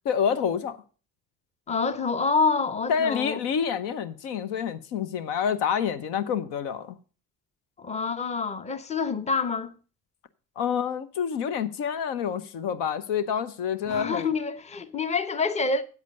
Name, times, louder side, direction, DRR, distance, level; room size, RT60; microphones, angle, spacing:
voice 1, 0.1-0.8 2.9-7.0 10.6-14.3, left 7 dB, 65° left, 0.9 m, -28 dB
voice 2, 1.7-3.4 7.8-9.7 13.9-15.8, left 4 dB, 15° left, 0.8 m, -27 dB
8.3 x 8.2 x 5.3 m
hypercardioid pair, 55°, 46 cm